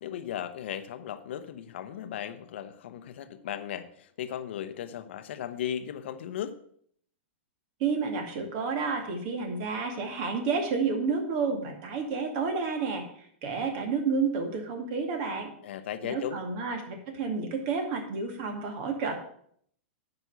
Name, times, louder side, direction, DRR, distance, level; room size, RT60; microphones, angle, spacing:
voice 1, 0.0-6.6 15.6-16.4, left 10 dB, 65° left, 0.9 m, -36 dB
voice 2, 7.8-13.0 13.4-15.5 16.0-19.1, right 5 dB, 50° right, 2.3 m, -30 dB
9.3 x 5.4 x 6.7 m
hypercardioid pair, 130°, 7 cm